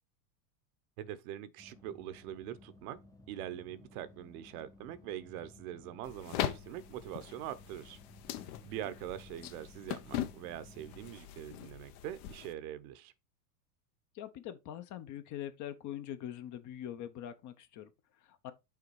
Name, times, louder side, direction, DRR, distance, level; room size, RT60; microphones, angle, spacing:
voice 1, 1.0-3.0 3.3-8.0 8.3-13.1, right 11 dB, 60° right, 0.9 m, -43 dB
sound 1, 1.6-11.1, left 1 dB, 5° left, 0.6 m, -58 dB
sound 2, 6.0-12.5, left 12 dB, 60° left, 1.0 m, -41 dB
voice 2, 14.1-18.5, left 11 dB, 35° left, 0.8 m, -43 dB
5.8 x 3.8 x 4.7 m
hypercardioid pair, 110°, 50 cm